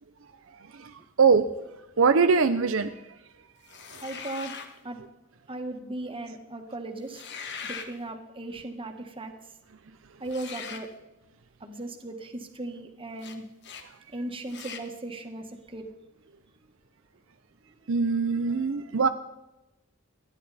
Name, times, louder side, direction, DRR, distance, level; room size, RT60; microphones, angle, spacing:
voice 1, 2.0-2.9 17.9-19.1, right 5 dB, 70° right, 0.6 m, -22 dB
sound 1, 3.7-4.7 7.0-7.9 10.3-10.9 13.2-13.4 13.6-13.9 14.5-14.9, left 6 dB, 55° left, 1.4 m, -40 dB
voice 2, 4.0-4.5 4.8-5.0 5.5-7.2 7.6-9.5 10.2-10.9 11.6-13.5 14.1-15.9 17.6-18.0 18.5-19.1, right 2 dB, 25° right, 1.7 m, -37 dB
29.5 x 10.5 x 4.2 m
head